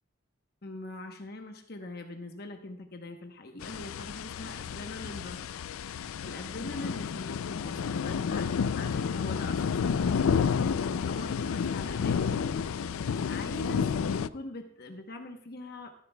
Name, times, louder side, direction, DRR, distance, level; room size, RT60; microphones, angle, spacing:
voice 1, 0.6-5.6 6.2-12.4 13.2-15.9, left 2 dB, 50° left, 4 dB, 0.9 m, -42 dB
sound 1, 3.6-14.3, left 6 dB, 85° left, 0.4 m, -30 dB
13.5 x 12.5 x 2.2 m, 0.73 s
head